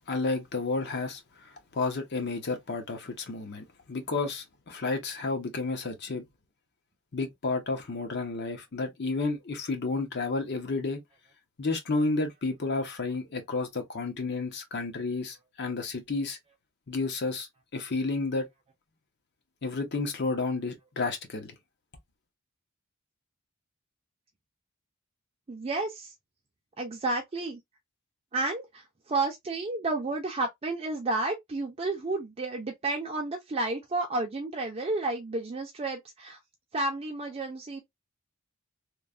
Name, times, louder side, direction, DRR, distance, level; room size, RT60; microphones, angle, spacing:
voice 1, 0.1-1.2 1.7-6.3 7.1-11.0 11.6-16.4 16.9-18.5 19.6-21.5, left 3 dB, 50° left, 0.7 m, -31 dB
voice 2, 25.5-26.1 26.8-27.6 28.3-36.4 36.7-37.8, right 2 dB, 25° right, 0.4 m, -31 dB
3.1 x 2.1 x 2.4 m
head